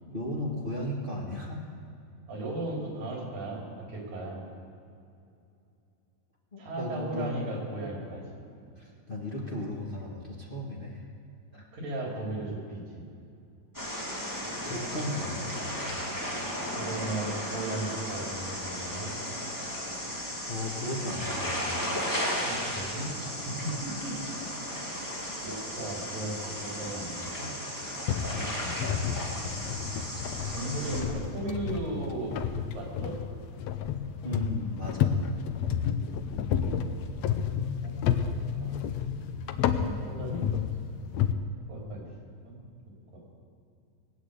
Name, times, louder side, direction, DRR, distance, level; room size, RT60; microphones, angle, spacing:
voice 1, 0.0-1.7 6.5-7.4 8.8-11.1 11.5-11.6 14.2-16.0 20.5-21.8 25.1-25.3 28.3-28.5 34.2-35.1, left 1 dB, 55° left, -3 dB, 0.5 m, -36 dB
voice 2, 2.3-4.4 6.6-8.4 11.7-13.0 16.7-19.1 22.4-24.4 25.4-27.5 28.3-29.0 30.5-32.4 32.7-33.1 35.8-36.7 37.8-38.8 39.5-40.5 41.7-42.1 42.4-42.6 43.1-43.2, right 2 dB, 75° right, -2 dB, 5.1 m, -36 dB
sound 1, 13.7-31.0, equal, 5° left, 2.0 m, -35 dB
sound 2, 28.1-41.3, left 8 dB, 85° left, 1.5 m, -31 dB
20.0 x 8.8 x 8.2 m, 2.6 s
omnidirectional pair, 4.0 m